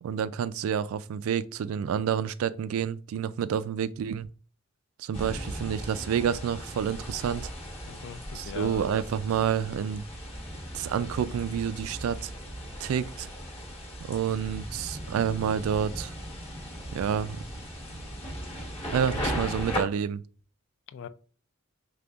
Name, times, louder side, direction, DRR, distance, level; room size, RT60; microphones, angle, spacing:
voice 1, 0.0-4.3 5.0-7.5 8.3-10.1 10.7-12.3 12.8-13.3 14.0-16.1 16.9-17.4 18.9-20.2, right 8 dB, 75° right, 0.3 m, -29 dB
sound 1, 5.1-19.8, equal, 25° left, 1.1 m, -37 dB
voice 2, 7.8-8.8 20.9-21.1, left 7 dB, 60° left, 0.3 m, -41 dB
5.2 x 3.3 x 2.3 m
head